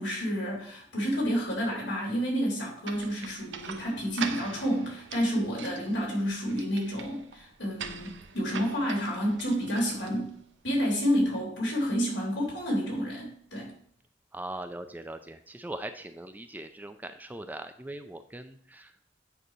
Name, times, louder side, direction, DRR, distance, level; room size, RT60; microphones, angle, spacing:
voice 1, 0.0-10.3 10.6-13.7, equal, 75° left, -3 dB, 3.2 m, -29 dB
sound 1, 2.8-10.5, right 6 dB, 85° right, 0.8 m, -42 dB
voice 2, 14.3-19.0, right 1 dB, 10° right, 8 dB, 0.4 m, -40 dB
9.0 x 3.2 x 5.4 m, 0.62 s
head